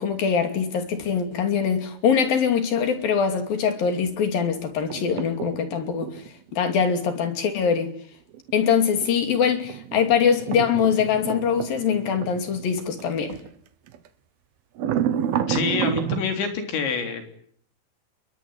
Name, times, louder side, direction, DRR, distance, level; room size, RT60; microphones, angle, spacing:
voice 1, 0.0-6.2 6.5-7.9 8.5-13.4, left 7 dB, 55° left, 4.3 m, -23 dB
sound 1, 4.9-6.3 8.3-13.5 13.9-14.1 14.8-16.3, right 9 dB, 65° right, 2.9 m, -30 dB
voice 2, 15.5-17.4, left 5 dB, 75° left, 5.8 m, -27 dB
28.0 x 22.0 x 9.5 m
omnidirectional pair, 5.2 m